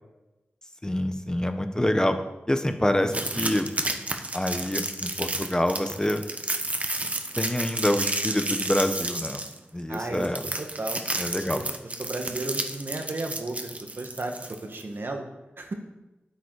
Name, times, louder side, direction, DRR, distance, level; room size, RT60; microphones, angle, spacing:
voice 1, 0.8-2.1 2.5-3.7 4.3-6.2 7.4-9.4 9.7-10.4 11.2-11.6, left 1 dB, 15° left, 7 dB, 1.0 m, -26 dB
sound 1, 3.1-14.8, right 2 dB, 35° right, 1.0 m, -31 dB
voice 2, 9.9-10.3 10.6-11.0 11.4-11.7 12.0-14.3 14.6-15.2 15.6-15.7, right 2 dB, 60° right, 3 dB, 1.5 m, -33 dB
9.2 x 8.2 x 4.8 m, 1.0 s
wide cardioid pair, 60°, 4 cm